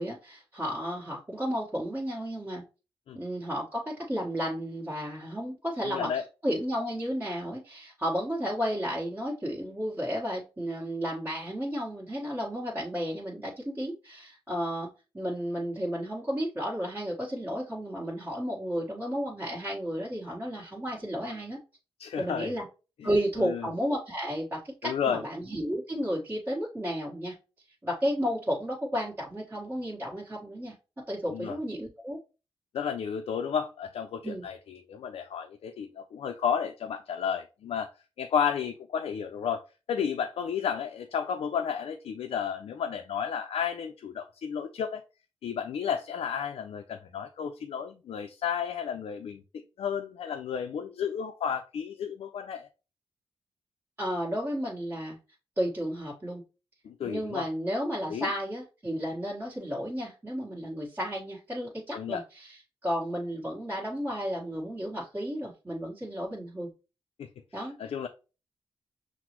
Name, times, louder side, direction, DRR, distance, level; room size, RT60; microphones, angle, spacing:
voice 1, 0.0-2.6 3.1-14.9 15.1-21.6 22.2-22.6 23.0-27.3 27.8-30.7 31.1-32.2 34.2-34.5 54.0-55.2 55.6-56.4 57.0-66.7 67.5-67.8, equal, 20° right, 1.3 m, -32 dB
voice 2, 5.8-6.2 22.0-22.6 23.0-23.1 23.4-23.7 24.8-25.2 31.3-31.6 32.7-37.9 38.2-39.6 39.9-45.0 45.4-52.7 56.8-57.5 58.1-58.3 61.9-62.2 67.2-67.3 67.8-68.1, left 7 dB, 75° left, 0.4 m, -32 dB
5.8 x 2.0 x 2.9 m
cardioid pair, 60°, 10 cm